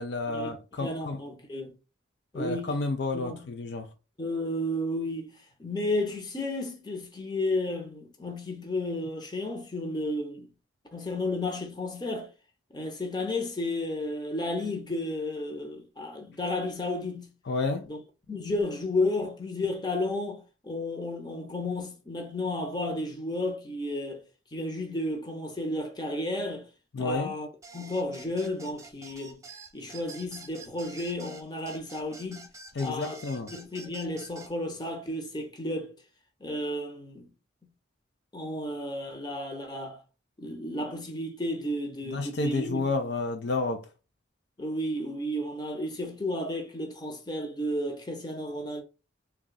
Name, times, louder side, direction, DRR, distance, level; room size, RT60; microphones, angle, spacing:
voice 1, 0.0-1.2 2.3-3.9 17.5-17.9 26.9-27.3 32.8-33.5 42.1-43.9, left 3 dB, 60° left, 0.5 m, -30 dB
voice 2, 0.8-1.7 2.3-2.7 3.1-3.4 4.2-5.3 5.6-10.5 10.9-12.3 12.7-17.3 17.8-18.0 18.3-24.2 24.5-26.7 27.0-27.5 27.7-29.4 29.7-32.5 32.8-33.2 33.5-35.9 36.4-37.3 38.3-40.0 40.4-42.8 44.6-48.8, left 1 dB, 20° left, 0.8 m, -32 dB
sound 1, 27.6-34.5, right 4 dB, 15° right, 0.7 m, -48 dB
3.6 x 2.3 x 3.9 m
head